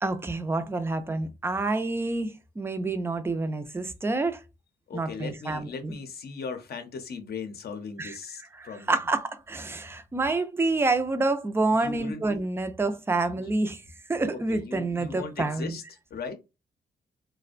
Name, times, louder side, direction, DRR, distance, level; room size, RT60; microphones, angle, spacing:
voice 1, 0.0-4.4 4.9-6.0 8.0-8.2 8.5-13.8 14.1-15.8, right 3 dB, 15° right, 0.3 m, -28 dB
voice 2, 4.9-9.0 11.7-12.4 13.4-13.5 14.5-16.3, left 5 dB, 60° left, 0.6 m, -38 dB
2.5 x 2.1 x 2.4 m
cardioid pair, 100°, 19 cm